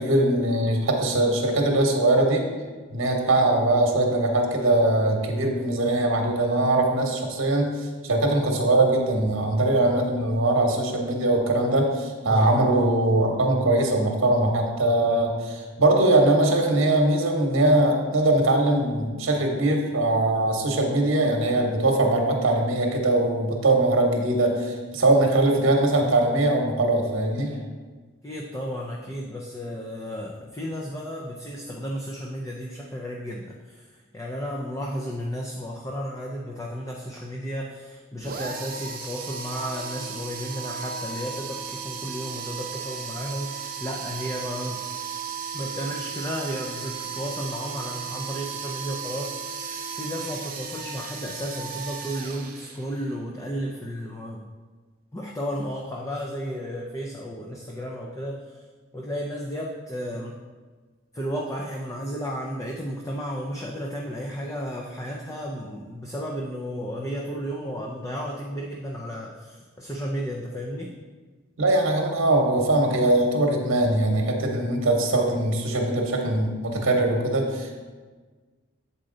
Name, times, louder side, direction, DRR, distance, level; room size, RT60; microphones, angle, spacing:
voice 1, 0.0-2.4 2.9-7.7 8.0-27.6 71.6-77.8, right 2 dB, 75° right, 2 dB, 1.0 m, -21 dB
voice 2, 12.3-12.6 15.7-15.8 28.2-44.8 45.5-54.4 55.1-58.6 58.9-60.4 61.1-70.9, equal, 15° left, -1 dB, 0.4 m, -33 dB
sound 1, 38.2-53.1, right 6 dB, 45° right, 0.6 m, -35 dB
7.7 x 4.3 x 3.8 m, 1.4 s
head